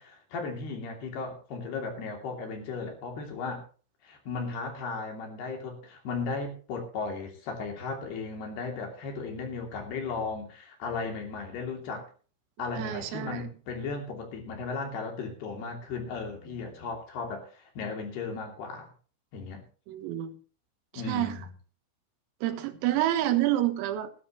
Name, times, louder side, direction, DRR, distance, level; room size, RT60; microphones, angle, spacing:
voice 1, 0.0-3.6 4.0-12.1 12.6-18.9 19.3-19.6 20.9-21.4, left 4 dB, 55° left, 2 dB, 4.6 m, -36 dB
voice 2, 12.8-13.4 19.9-20.4 20.9-21.4 22.4-24.1, right 13 dB, 90° right, 9 dB, 4.1 m, -28 dB
19.0 x 12.5 x 3.1 m, 0.38 s
omnidirectional pair, 5.9 m